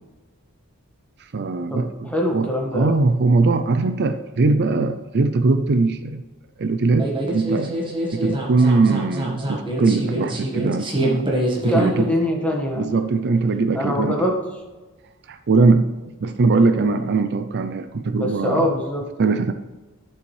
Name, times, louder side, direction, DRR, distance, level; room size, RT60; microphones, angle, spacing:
voice 1, 1.3-2.5 2.7-6.2 6.6-7.8 8.1-11.3 11.6-12.1 12.8-14.2 15.3-15.9 16.2-18.7 19.2-19.5, right 3 dB, 50° right, 9 dB, 0.5 m, -20 dB
voice 2, 2.0-2.9 11.7-12.9 13.7-14.4 18.2-19.0, left 1 dB, 5° left, -1 dB, 1.5 m, -23 dB
sound 1, 7.0-12.1, right 1 dB, 20° right, 1.5 m, -26 dB
11.0 x 7.0 x 3.2 m, 1.2 s
head